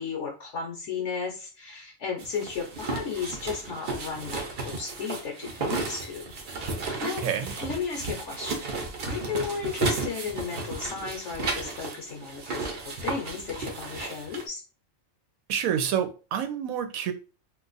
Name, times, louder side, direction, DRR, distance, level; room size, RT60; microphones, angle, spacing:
voice 1, 0.0-6.7 7.0-7.2 7.6-14.6, left 5 dB, 65° left, 1.0 m, -34 dB
sound 1, 2.2-14.5, right 3 dB, 55° right, 0.8 m, -34 dB
voice 2, 7.2-7.5 15.5-17.1, right 8 dB, 90° right, 1.0 m, -28 dB
2.6 x 2.4 x 3.8 m
omnidirectional pair, 1.4 m